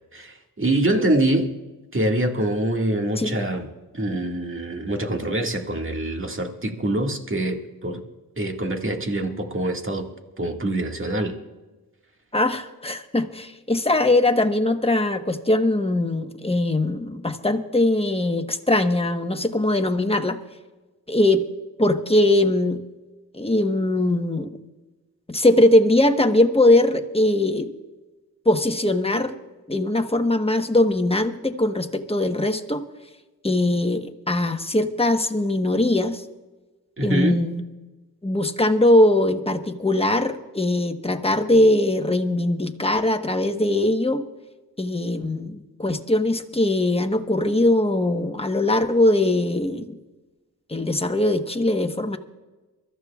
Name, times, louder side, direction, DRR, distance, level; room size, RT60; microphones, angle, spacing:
voice 1, 0.1-1.5 1.9-3.7 3.9-8.0 8.4-10.1 10.4-11.4 37.0-37.4, right 1 dB, 35° right, 3 dB, 2.0 m, -24 dB
voice 2, 12.3-20.4 21.1-21.4 21.8-22.8 23.3-24.5 25.3-27.7 28.4-29.4 29.7-32.8 33.4-36.2 37.0-37.6 38.2-44.2 44.8-50.0 50.7-52.2, left 1 dB, 15° left, 6 dB, 1.2 m, -21 dB
24.0 x 14.0 x 2.4 m, 1.2 s
cardioid pair, 45°, 37 cm